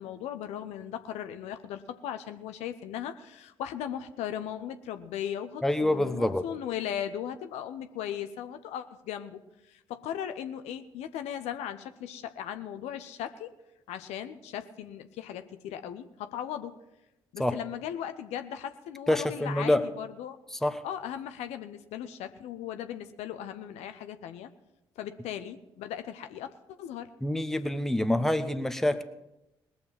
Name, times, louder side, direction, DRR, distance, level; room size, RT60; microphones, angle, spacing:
voice 1, 0.0-13.5 13.9-16.7 17.3-20.4 20.8-24.5 25.0-27.1, left 10 dB, 60° left, 9 dB, 0.7 m, -38 dB
voice 2, 5.6-6.4 17.4-17.6 19.1-19.8 20.6-20.8 27.2-29.0, left 1 dB, 5° left, 9 dB, 1.1 m, -26 dB
20.5 x 6.9 x 5.9 m, 0.91 s
figure-of-eight pair, 40°, 12 cm